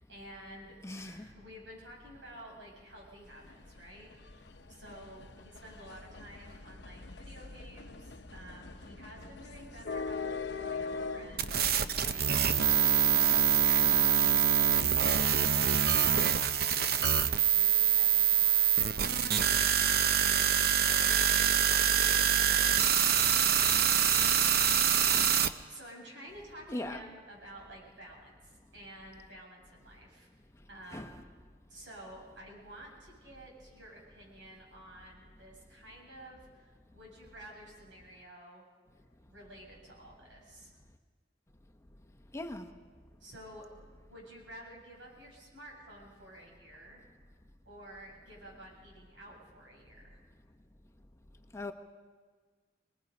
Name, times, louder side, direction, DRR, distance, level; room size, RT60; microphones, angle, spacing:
voice 1, 0.0-10.3 10.6-16.0 16.6-21.1 21.7-23.3 25.7-30.3 30.7-31.2 31.7-38.7 39.3-40.8 43.2-43.7 44.1-47.0 47.7-50.2, right 1 dB, 85° right, 7.6 m, -51 dB
voice 2, 0.8-1.3 25.1-25.3 26.7-27.0 30.9-31.2 42.3-42.7 51.5-51.7, left 1 dB, 15° left, 1.0 m, -39 dB
sound 1, 3.2-15.2, left 4 dB, 65° left, 0.8 m, -43 dB
sound 2, 11.4-25.5, right 9 dB, 55° right, 0.7 m, -25 dB
25.5 x 20.5 x 5.3 m
head